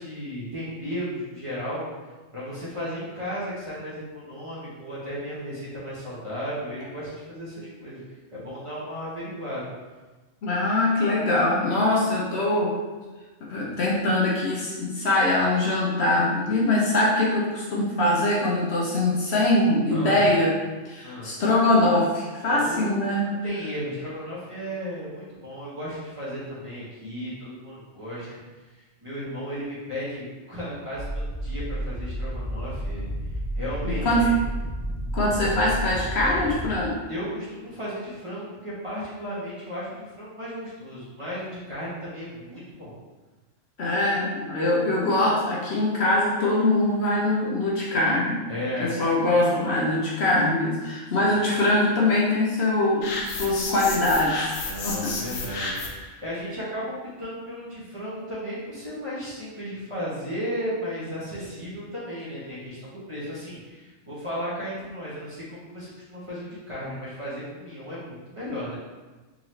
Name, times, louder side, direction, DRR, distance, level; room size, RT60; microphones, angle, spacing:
voice 1, 0.0-1.9 2.3-9.7 19.9-20.2 21.0-21.3 22.5-28.3 28.7-34.4 37.1-42.9 48.5-48.9 51.1-51.4 54.6-68.8, equal, 25° right, -10 dB, 0.9 m, -35 dB
voice 2, 10.4-12.7 13.5-20.5 20.8-23.3 33.8-34.3 35.1-36.9 43.8-48.5 48.8-54.6 54.8-55.1, left 2 dB, 60° left, -5 dB, 0.9 m, -23 dB
sound 1, 30.9-36.8, right 1 dB, 10° left, 0.3 m, -31 dB
sound 2, 53.0-56.1, left 3 dB, 85° left, 1.1 m, -32 dB
3.7 x 2.9 x 3.1 m, 1.2 s
omnidirectional pair, 1.4 m